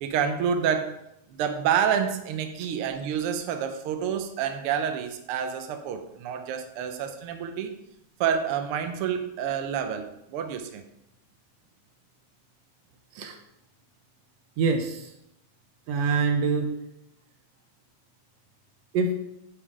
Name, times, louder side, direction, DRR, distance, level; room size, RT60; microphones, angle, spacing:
voice 1, 0.0-1.0 1.3-7.7 8.2-10.8, right 8 dB, 85° right, 6 dB, 1.2 m, -28 dB
voice 2, 14.6-15.1 15.9-16.7 18.9-19.1, right 4 dB, 70° right, 5 dB, 1.9 m, -25 dB
9.7 x 3.7 x 4.8 m, 0.81 s
omnidirectional pair, 3.4 m